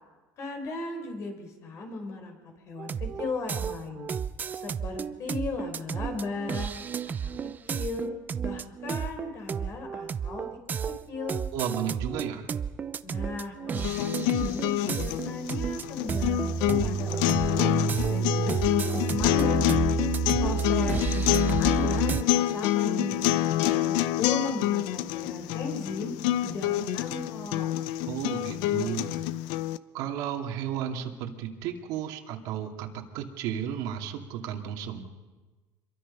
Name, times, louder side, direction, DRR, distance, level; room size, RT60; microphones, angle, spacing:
voice 1, 0.4-2.4 2.7-4.1 4.6-6.7 7.2-8.1 8.4-10.8 11.1-11.4 13.0-17.8 18.1-19.6 20.4-23.2 23.6-26.1 26.4-27.8, left 3 dB, 45° left, 4 dB, 5.5 m, -36 dB
sound 1, 2.8-22.2, right 7 dB, 25° right, 0.7 m, -31 dB
voice 2, 11.5-12.5 28.1-29.2 29.9-35.0, right 9 dB, 75° right, 2 dB, 2.6 m, -33 dB
sound 2, 13.8-29.8, left 14 dB, 85° left, 0.7 m, -27 dB
26.5 x 23.0 x 5.5 m, 1.3 s
cardioid pair, 140°, 7 cm